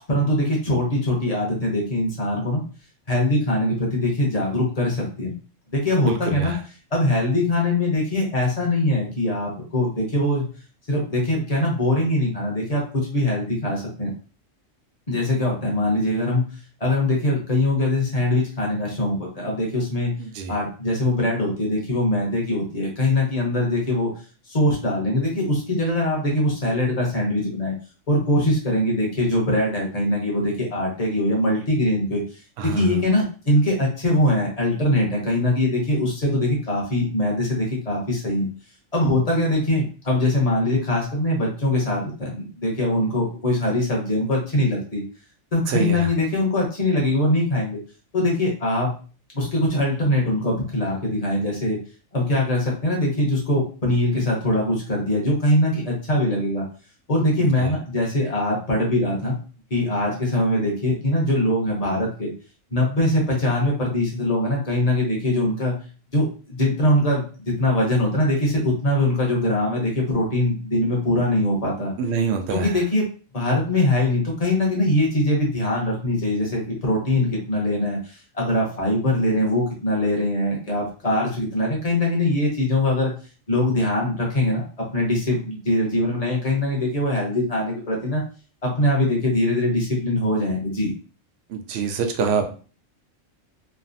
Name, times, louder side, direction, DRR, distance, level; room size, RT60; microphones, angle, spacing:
voice 1, 0.1-2.6 3.1-5.3 5.7-6.5 6.9-10.5 10.9-14.1 15.1-16.5 16.8-20.1 20.5-24.1 24.5-27.7 28.1-32.2 32.6-38.5 38.9-45.0 45.5-47.8 48.1-48.9 49.3-51.8 52.1-56.6 57.1-59.4 59.7-62.3 62.7-65.8 66.1-71.9 72.5-73.0 73.3-83.1 83.5-88.2 88.6-90.9, left 1 dB, 35° left, -1 dB, 0.8 m, -22 dB
voice 2, 6.0-6.6 20.2-20.5 32.6-33.0 45.7-46.1 57.4-57.7 72.0-72.8 91.5-92.5, right 5 dB, 65° right, 5 dB, 0.7 m, -26 dB
3.2 x 2.0 x 2.5 m, 0.37 s
omnidirectional pair, 1.3 m